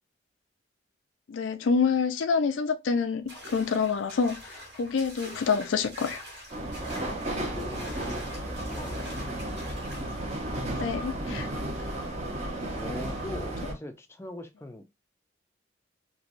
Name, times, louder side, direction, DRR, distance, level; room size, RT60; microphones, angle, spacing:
voice 1, 1.3-4.4 4.8-6.2 10.7-11.5, left 5 dB, 85° left, 0.4 m, -27 dB
sound 1, 3.3-10.2, equal, 65° right, 1.4 m, -45 dB
sound 2, 6.5-13.7, right 1 dB, 35° right, 0.7 m, -33 dB
voice 2, 6.8-7.3 7.6-9.2 12.8-14.8, left 1 dB, 15° left, 0.4 m, -42 dB
3.1 x 2.2 x 2.5 m
head